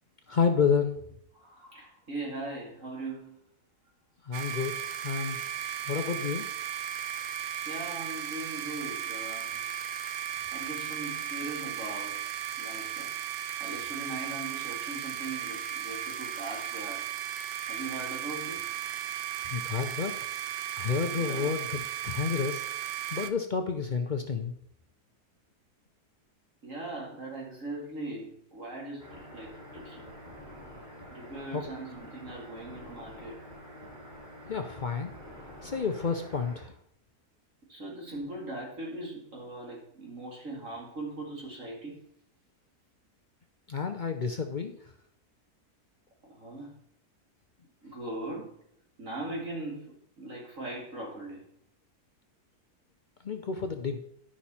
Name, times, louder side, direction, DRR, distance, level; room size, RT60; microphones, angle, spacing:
voice 1, 0.3-0.9 4.3-5.4 5.9-6.5 19.5-20.2 20.8-24.5 31.5-31.6 34.5-35.1 35.6-36.7 43.7-44.8 53.2-54.0, left 6 dB, 60° left, 5 dB, 0.5 m, -30 dB
voice 2, 1.3-3.4 7.7-9.6 10.5-12.2 12.6-13.1 13.6-17.0 17.7-18.6 21.1-21.6 26.6-30.1 31.1-33.4 37.7-42.0 46.3-46.7 47.8-48.6 49.0-51.4, right 2 dB, 55° right, -2 dB, 2.6 m, -40 dB
sound 1, 4.3-23.3, right 10 dB, 85° right, 1.2 m, -36 dB
sound 2, 29.0-36.6, equal, 30° right, 4.4 m, -47 dB
10.0 x 6.1 x 4.2 m, 0.71 s
omnidirectional pair, 1.7 m